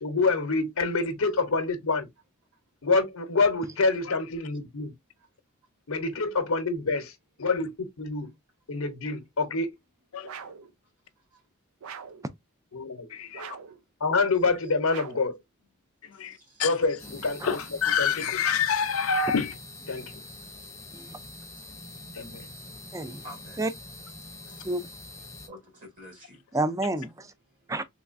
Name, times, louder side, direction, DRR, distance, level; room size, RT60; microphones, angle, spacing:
voice 1, 0.0-2.1 2.8-4.9 5.9-7.1 7.4-8.3 8.7-9.7 12.7-13.1 14.0-15.4 16.6-17.6 18.0-18.4 19.9-20.2 22.1-22.5, left 3 dB, 90° left, 0.8 m, -27 dB
sound 1, 10.2-10.7 11.8-12.3 13.3-13.8 14.9-15.3, right 7 dB, 80° right, 0.5 m, -42 dB
voice 2, 13.1-13.6 16.0-16.7 17.4-19.5, left 7 dB, 70° left, 0.5 m, -28 dB
voice 3, 16.1-16.7 20.6-20.8 23.2-23.6 24.3-24.7 25.4-26.5 27.2-27.7, equal, 40° right, 1.7 m, -50 dB
sound 2, 17.0-25.5, left 2 dB, 15° left, 0.7 m, -44 dB
voice 4, 22.9-23.2 23.6-23.7 24.6-24.8 26.5-27.3 27.7-27.8, right 2 dB, 15° right, 0.4 m, -29 dB
3.5 x 3.1 x 2.5 m
head